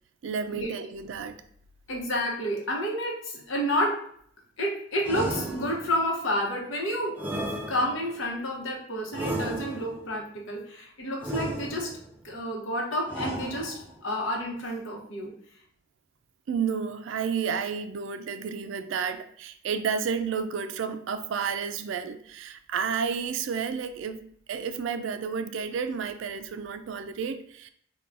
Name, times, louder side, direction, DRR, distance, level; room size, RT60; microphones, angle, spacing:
voice 1, 0.2-1.4 16.5-27.7, right 6 dB, 80° right, 10 dB, 0.3 m, -31 dB
voice 2, 1.9-4.0 4.6-7.2 7.7-11.9 12.2-15.3, equal, 90° left, -1 dB, 0.9 m, -30 dB
sound 1, 5.0-6.1 7.2-8.2 9.1-10.1 11.2-12.1 13.1-14.0, right 1 dB, 10° right, 0.4 m, -34 dB
4.5 x 2.2 x 2.5 m, 0.64 s
head